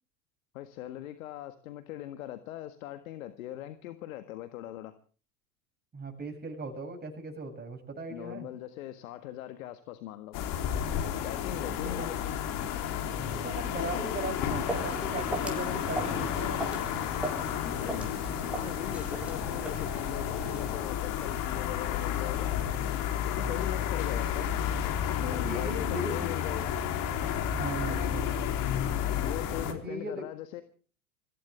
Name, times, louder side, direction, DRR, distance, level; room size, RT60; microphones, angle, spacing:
voice 1, 0.5-4.9 8.1-10.5 11.2-12.3 17.7-22.6 23.2-24.5 25.2-26.7 29.2-30.6, left 13 dB, 70° left, 9 dB, 1.7 m, -40 dB
voice 2, 5.9-8.5 11.8-12.1 13.3-16.8 23.4-23.7 25.3-26.3 27.5-28.4 29.7-30.3, right 2 dB, 20° right, 3 dB, 7.3 m, -38 dB
sound 1, 10.3-29.7, left 9 dB, 50° left, 3.4 m, -31 dB
Walk footsteps, 14.3-20.9, right 1 dB, 5° right, 6.2 m, -38 dB
26.0 x 16.0 x 3.4 m, 0.40 s
hypercardioid pair, 90°, 43 cm